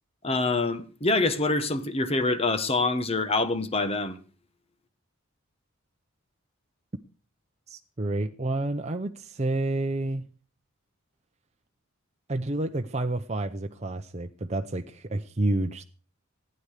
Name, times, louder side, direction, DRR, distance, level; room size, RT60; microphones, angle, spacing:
voice 1, 0.2-4.2, left 2 dB, 30° left, 1.3 m, -25 dB
voice 2, 7.7-10.3 12.3-15.8, right 2 dB, 30° right, 0.8 m, -29 dB
16.0 x 9.8 x 6.6 m
head